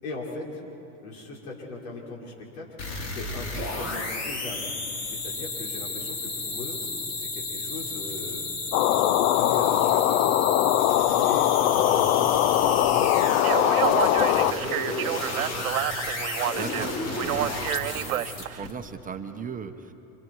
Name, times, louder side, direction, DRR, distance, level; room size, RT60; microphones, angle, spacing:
voice 1, 0.0-0.6 1.0-2.7 3.0-4.7 5.0-6.8 7.2-8.5 8.8-10.7 11.2-15.7, left 3 dB, 85° left, -2 dB, 5.8 m, -39 dB
sound 1, 2.8-18.7, left 2 dB, 40° left, 3.8 m, -32 dB
sound 2, 8.7-14.5, left 13 dB, 55° left, 0.8 m, -21 dB
Speech, 13.3-18.7, right 13 dB, 90° right, 0.8 m, -30 dB
voice 2, 16.5-17.5 17.9-19.9, right 6 dB, 20° right, 6 dB, 1.2 m, -37 dB
29.0 x 27.5 x 4.9 m, 2.9 s
hypercardioid pair, 115°, 41 cm